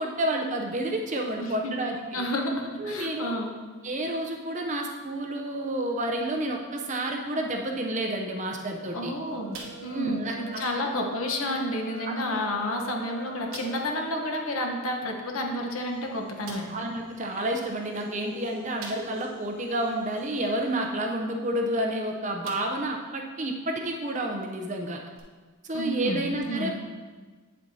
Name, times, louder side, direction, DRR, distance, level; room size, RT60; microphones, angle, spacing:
voice 1, 0.0-2.2 2.8-3.4 3.8-9.1 9.9-10.9 12.1-12.2 16.7-25.0 25.6-26.7, right 1 dB, 35° right, 1 dB, 0.6 m, -30 dB
voice 2, 1.4-1.7 2.1-3.5 8.9-16.7 25.7-26.7, left 1 dB, 65° left, 2 dB, 1.0 m, -31 dB
sound 1, 9.2-14.5, right 2 dB, 90° right, 0.9 m, -43 dB
sound 2, 9.5-10.2 10.5-10.7 11.3-11.4 12.2-12.3 12.7-12.8 13.5-13.9 15.6-15.7 16.4-16.8 18.8-19.4 19.9-20.0 21.8-22.0 22.4-22.9 23.4-23.5 25.1-25.2, right 3 dB, 65° right, 1.1 m, -44 dB
sound 3, 15.8-20.4, equal, 10° left, 2.2 m, -45 dB
8.7 x 7.6 x 2.7 m, 1.4 s
head